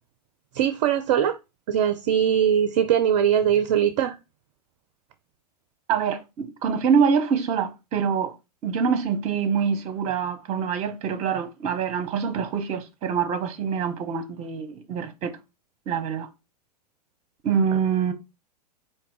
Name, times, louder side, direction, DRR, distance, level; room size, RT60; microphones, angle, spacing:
voice 1, 0.5-1.4 1.7-4.2, right 9 dB, 45° right, 0.5 m, -21 dB
voice 2, 5.9-8.3 8.6-15.3 15.9-16.3 17.4-18.1, right 6 dB, 30° right, 0.9 m, -25 dB
4.6 x 2.7 x 3.8 m
figure-of-eight pair, 95°, 21 cm